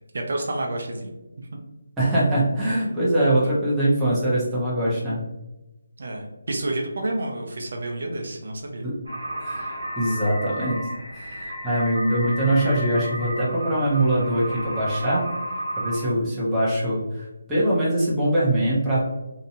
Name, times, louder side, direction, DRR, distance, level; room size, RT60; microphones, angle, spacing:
voice 1, 0.1-1.1 6.0-8.8, right 2 dB, 55° right, 1 dB, 0.5 m, -29 dB
voice 2, 2.0-5.2 8.8-9.0 9.4-10.8 11.1-15.2 15.8-19.0, right 1 dB, 5° right, -10 dB, 0.6 m, -23 dB
sound 1, 9.1-16.1, right 1 dB, 80° right, 0.8 m, -32 dB
2.7 x 2.1 x 2.7 m, 1.0 s
figure-of-eight pair, 170°, 0 cm